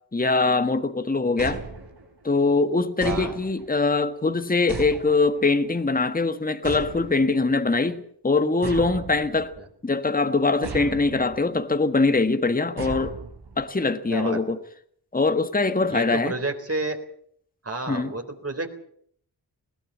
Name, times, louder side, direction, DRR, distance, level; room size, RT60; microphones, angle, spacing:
voice 1, 0.1-1.6 2.2-9.5 9.8-13.2 13.6-14.6 15.1-16.4 17.9-18.1, left 3 dB, 20° left, 1.5 m, -22 dB
sound 1, 1.4-2.3 3.0-3.8 4.7-5.5 6.6-7.4 8.6-9.6 10.6-11.4 12.8-13.7, right 4 dB, 75° right, 4.7 m, -36 dB
voice 2, 14.1-14.4 15.9-17.0 17.6-18.7, right 2 dB, 35° right, 3.9 m, -30 dB
20.5 x 16.5 x 8.3 m
cardioid pair, 55°, 40 cm